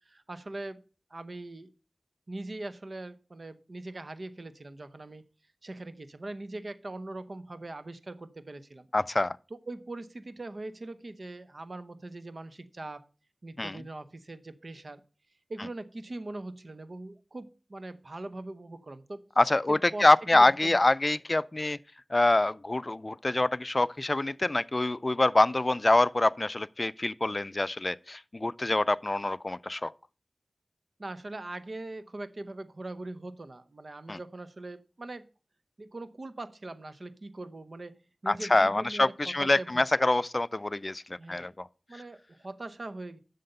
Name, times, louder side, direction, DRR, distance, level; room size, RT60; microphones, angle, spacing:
voice 1, 0.1-0.8 1.1-1.7 2.3-5.2 5.6-8.9 9.7-13.0 13.4-15.0 15.5-19.2 19.7-20.0 20.3-20.9 31.0-35.3 35.8-38.0 38.2-39.1 39.4-40.1 41.2-41.6 41.9-43.2, right 2 dB, 55° right, 0.7 m, -41 dB
voice 2, 8.9-9.4 13.6-13.8 19.4-21.8 22.1-29.9 34.1-34.2 38.3-41.7 41.9-42.0, left 2 dB, 40° left, 0.3 m, -25 dB
7.7 x 6.7 x 5.3 m
wide cardioid pair, 75°, 0 cm